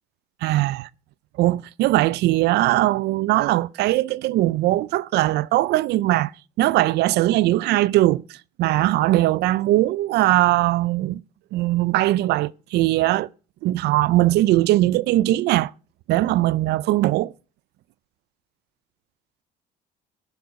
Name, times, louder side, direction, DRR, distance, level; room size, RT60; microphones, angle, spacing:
voice 1, 0.4-0.9 1.4-6.3 6.6-11.2 11.5-13.3 13.6-15.7 16.1-17.3, right 16 dB, 75° right, 0.4 m, -20 dB
14.5 x 6.9 x 5.1 m
cardioid pair, 110°, 17 cm